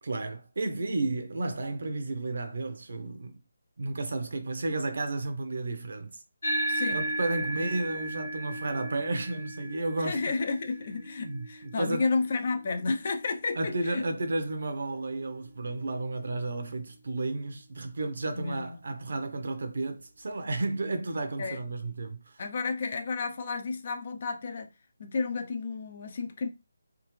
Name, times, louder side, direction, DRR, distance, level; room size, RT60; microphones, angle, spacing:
voice 1, 0.0-3.4 3.8-6.2 6.9-10.4 11.2-12.1 13.6-22.4, right 2 dB, 60° right, 0.9 m, -32 dB
sound 1, 6.4-15.2, right 1 dB, 85° left, 1.2 m, -36 dB
voice 2, 6.7-7.0 7.5-7.6 10.0-14.1 18.3-18.8 21.4-21.6 22.4-24.7 25.0-26.5, left 4 dB, 45° left, 0.7 m, -31 dB
3.6 x 2.7 x 3.2 m
figure-of-eight pair, 155°, 0 cm